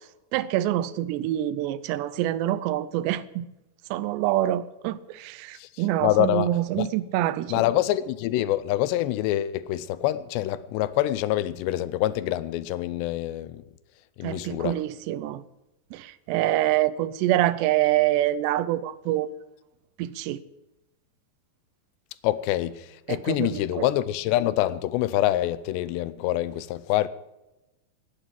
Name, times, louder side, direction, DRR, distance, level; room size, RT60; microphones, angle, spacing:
voice 1, 0.3-3.5 3.9-7.6 14.2-15.4 15.9-19.3 20.0-20.4 23.1-23.9, right 13 dB, 85° right, 2.9 m, -26 dB
voice 2, 6.0-6.5 6.8-6.9 7.5-13.6 14.2-14.8 22.2-27.1, left 14 dB, 85° left, 2.9 m, -26 dB
18.0 x 8.7 x 7.6 m
omnidirectional pair, 4.9 m